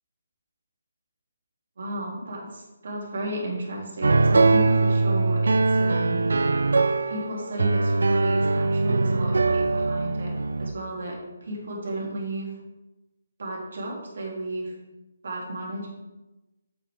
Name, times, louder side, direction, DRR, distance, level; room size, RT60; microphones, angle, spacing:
voice 1, 1.8-6.2 7.1-10.3 10.6-12.5 13.4-14.7 15.2-15.9, right 1 dB, 50° right, -3 dB, 3.0 m, -33 dB
sound 1, 4.0-10.7, right 3 dB, 90° right, 0.5 m, -22 dB
8.9 x 7.5 x 3.7 m, 1.0 s
hypercardioid pair, 180°, 0 cm